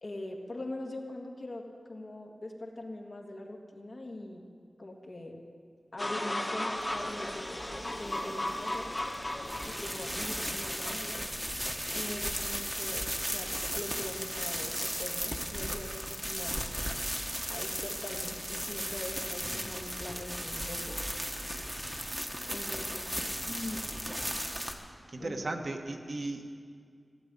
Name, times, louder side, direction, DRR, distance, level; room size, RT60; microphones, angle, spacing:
voice 1, 0.0-4.5 4.8-5.4 5.9-8.9 9.4-11.2 11.9-16.7 17.5-21.0 22.5-23.9 25.2-25.3, left 1 dB, 50° left, 1 dB, 1.8 m, -42 dB
sound 1, 6.0-10.9, left 1 dB, 20° left, 1.5 m, -36 dB
sound 2, 6.8-24.7, equal, 5° right, 1.3 m, -36 dB
voice 2, 25.1-26.5, right 2 dB, 50° right, 3 dB, 1.3 m, -36 dB
16.0 x 7.8 x 9.7 m, 2.1 s
wide cardioid pair, 100°, 0 cm